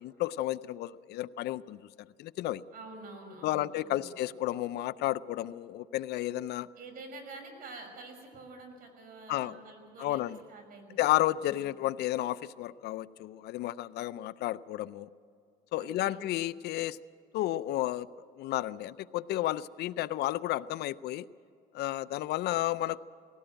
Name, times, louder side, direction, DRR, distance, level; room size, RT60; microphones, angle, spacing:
voice 1, 0.0-1.8 2.2-2.6 3.4-6.7 9.3-9.6 10.0-10.4 11.0-15.1 15.7-17.0 17.3-18.1 18.4-21.3 21.7-23.0, left 15 dB, 75° left, 17 dB, 0.6 m, -32 dB
voice 2, 2.7-4.1 6.7-10.2 10.5-11.0 11.5-11.8 15.8-16.3, right 2 dB, 60° right, 3 dB, 5.6 m, -47 dB
19.5 x 16.5 x 9.1 m, 2.3 s
cardioid pair, 110°, 17 cm